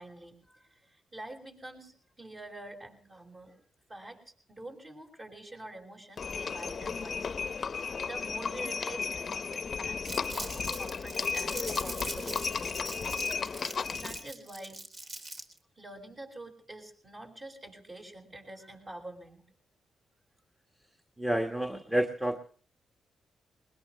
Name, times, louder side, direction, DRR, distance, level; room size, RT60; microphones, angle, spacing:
voice 1, 0.0-3.6 3.9-13.4 13.9-14.8 15.8-19.4, right 1 dB, 35° right, 2 dB, 6.0 m, -47 dB
Livestock farm animals working animals, 6.2-14.3, left 5 dB, 50° left, 0.7 m, -34 dB
Crumpling crinkling, 10.1-15.6, right 2 dB, 50° right, 3.7 m, -42 dB
voice 2, 21.2-22.4, right 1 dB, 10° right, 4 dB, 1.6 m, -29 dB
21.0 x 20.5 x 3.3 m, 0.42 s
supercardioid pair, 60°, 0 cm